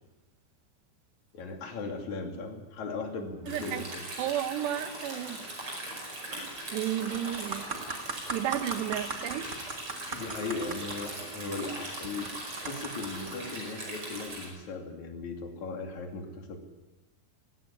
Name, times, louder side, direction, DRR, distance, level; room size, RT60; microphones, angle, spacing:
voice 1, 1.3-4.1 10.1-12.3 12.6-16.6, left 3 dB, 50° left, 3 dB, 3.7 m, -37 dB
Stream, 3.5-14.5, right 1 dB, 30° right, 6.1 m, -40 dB
voice 2, 3.5-3.8 4.2-5.4 6.7-7.7 8.3-9.5, right 11 dB, 90° right, 11 dB, 3.2 m, -32 dB
sound 1, 6.3-6.6 6.9-13.3 14.0-14.2, right 4 dB, 70° right, 0.7 m, -39 dB
19.5 x 16.0 x 10.0 m, 1.1 s
omnidirectional pair, 4.8 m